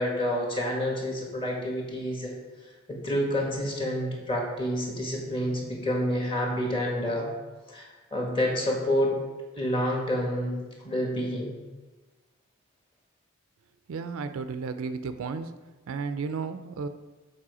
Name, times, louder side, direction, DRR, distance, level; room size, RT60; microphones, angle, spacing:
voice 1, 0.0-2.3 2.9-7.3 7.7-9.1 9.5-10.6 10.8-11.6, equal, 25° left, -1 dB, 1.4 m, -28 dB
voice 2, 13.9-15.5 15.9-16.9, right 5 dB, 70° right, 10 dB, 0.4 m, -33 dB
7.5 x 4.3 x 4.8 m, 1.2 s
head